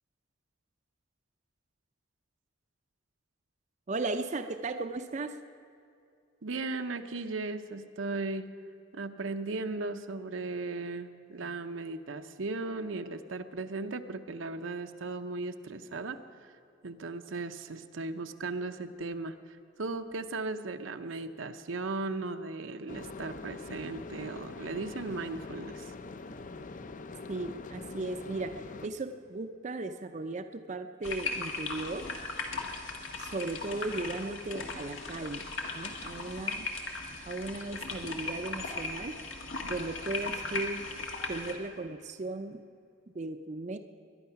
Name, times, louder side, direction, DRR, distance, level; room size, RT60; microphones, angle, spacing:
voice 1, 3.9-5.4 27.3-32.1 33.2-35.5 35.7-36.7 37.3-39.2 39.6-40.9 41.3-42.6 43.1-43.8, right 2 dB, 35° right, 7 dB, 0.5 m, -36 dB
voice 2, 6.4-8.5 8.9-16.5 16.8-25.9, right 3 dB, 85° right, 8 dB, 0.8 m, -37 dB
sound 1, 22.9-28.9, left 3 dB, 40° left, 0.5 m, -43 dB
sound 2, 31.0-41.5, left 3 dB, 85° left, 1.7 m, -38 dB
21.5 x 11.0 x 5.8 m, 2.5 s
head